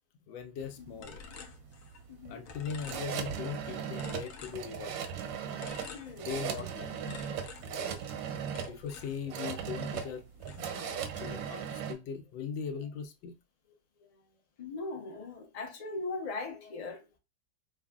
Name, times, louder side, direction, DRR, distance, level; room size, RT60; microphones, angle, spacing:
voice 1, 0.3-1.2 2.3-4.9 6.2-7.2 7.6-8.0 8.7-10.2 10.6-13.4, left 7 dB, 85° left, 1.3 m, -40 dB
sound 1, 0.6-11.9, right 8 dB, 90° right, 1.4 m, -38 dB
sound 2, 1.0-2.2 2.4-3.6 3.9-5.1 5.6-6.7 7.1-9.7 9.9-11.1, left 5 dB, 65° left, 0.8 m, -50 dB
voice 2, 2.1-2.4 5.9-6.3 8.8-8.9 14.0-14.2 14.6-17.0, left 3 dB, 40° left, 0.5 m, -40 dB
5.4 x 2.4 x 2.3 m
omnidirectional pair, 2.0 m